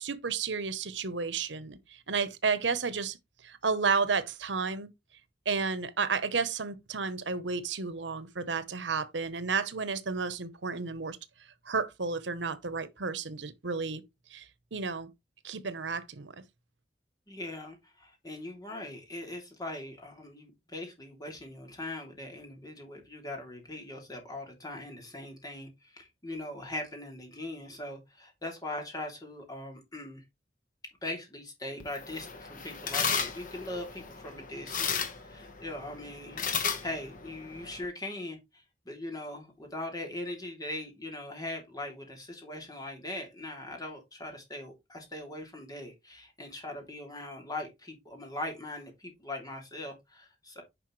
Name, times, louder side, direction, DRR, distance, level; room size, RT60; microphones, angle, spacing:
voice 1, 0.0-3.2 3.4-4.9 5.4-11.2 11.7-14.0 14.3-15.1 15.4-16.3, right 5 dB, 85° right, 0.9 m, -32 dB
voice 2, 17.3-30.2 31.0-34.9 35.2-36.4 36.8-50.6, left 1 dB, 20° left, 3.0 m, -40 dB
sound 1, 31.8-37.9, left 6 dB, 50° left, 1.3 m, -35 dB
9.9 x 5.3 x 3.2 m
head